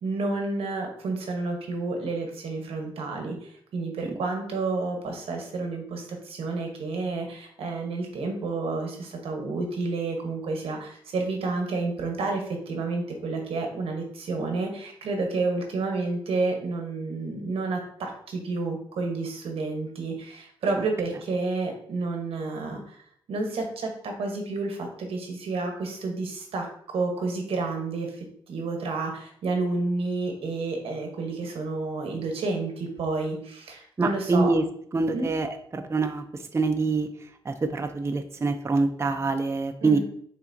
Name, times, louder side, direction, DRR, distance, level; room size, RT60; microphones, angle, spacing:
voice 1, 0.0-3.3 3.7-23.0 23.3-28.2 28.5-34.5 35.1-35.3 39.8-40.0, right 3 dB, 90° right, 3 dB, 1.0 m, -30 dB
voice 2, 34.0-34.6 34.9-40.0, right 3 dB, 30° right, 7 dB, 0.4 m, -26 dB
5.6 x 3.5 x 2.6 m, 0.64 s
cardioid pair, 80°, 10 cm